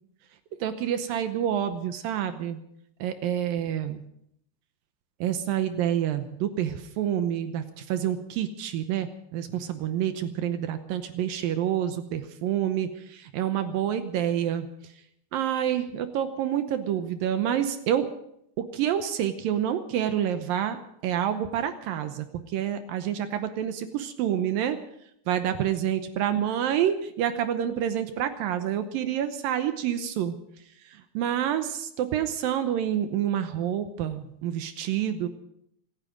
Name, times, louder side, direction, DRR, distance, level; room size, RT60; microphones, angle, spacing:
voice 1, 0.6-2.6 3.0-4.0 5.2-14.7 15.3-18.1 18.6-24.8 25.3-30.4 30.8-35.3, right 10 dB, 75° right, 9 dB, 2.4 m, -28 dB
27.0 x 9.7 x 5.2 m, 0.73 s
omnidirectional pair, 4.5 m